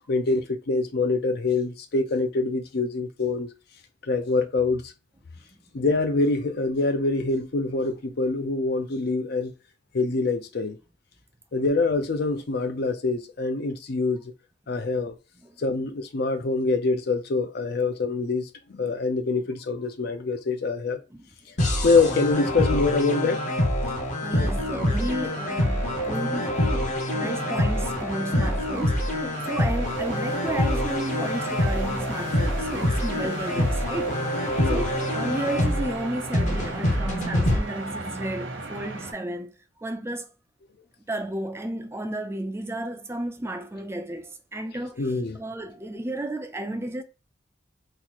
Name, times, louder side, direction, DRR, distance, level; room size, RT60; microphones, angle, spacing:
voice 1, 0.1-3.5 4.1-4.9 5.7-9.5 9.9-10.8 11.5-14.2 14.7-15.1 15.6-21.0 21.5-23.4 33.6-33.7 34.6-34.8 45.0-45.4, left 3 dB, 55° left, 0.5 m, -25 dB
sound 1, 21.6-37.6, left 1 dB, 40° left, 0.8 m, -26 dB
voice 2, 23.9-26.9 27.1-34.3 34.7-39.5 39.8-40.3 41.1-45.1 45.3-47.0, right 1 dB, 15° right, 0.4 m, -33 dB
sound 2, 24.5-39.1, right 2 dB, 70° right, 1.0 m, -37 dB
3.9 x 2.4 x 2.9 m
head